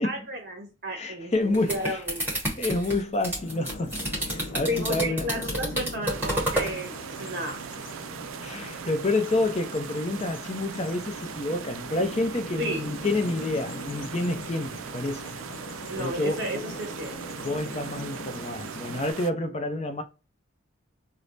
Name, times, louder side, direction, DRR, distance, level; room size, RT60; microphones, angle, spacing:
voice 1, 0.0-2.2 4.7-6.9 7.2-7.6 12.6-12.9 15.9-17.4, right 1 dB, 50° right, 1.4 m, -33 dB
voice 2, 0.9-2.0 2.6-5.3 7.2-7.3 8.4-15.2 16.0-16.7 17.4-20.0, left 2 dB, 30° left, 0.5 m, -29 dB
sound 1, 1.3-6.7, right 1 dB, 10° right, 1.3 m, -30 dB
Bird vocalization bird call bird song, 3.4-19.1, left 2 dB, 70° left, 0.6 m, -41 dB
sound 2, 6.1-19.3, right 8 dB, 90° right, 0.3 m, -40 dB
3.2 x 2.0 x 3.9 m
head